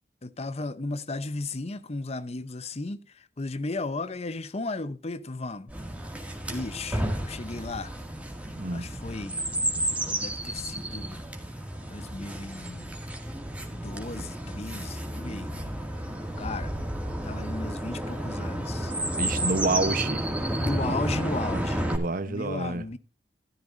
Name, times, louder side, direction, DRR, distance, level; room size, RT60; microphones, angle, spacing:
voice 1, 0.2-3.0 3.4-5.7 6.5-7.9 8.7-9.4 10.0-11.2 11.9-12.9 13.7-15.5 16.4-16.8 17.2-18.9 20.6-21.9 22.3-23.0, left 3 dB, 40° left, 0.8 m, -35 dB
Chirp tweet, 5.7-22.0, right 1 dB, 10° right, 2.2 m, -32 dB
voice 2, 19.2-20.3 20.8-21.0 21.4-22.8, right 3 dB, 55° right, 1.0 m, -29 dB
14.0 x 13.5 x 2.6 m
head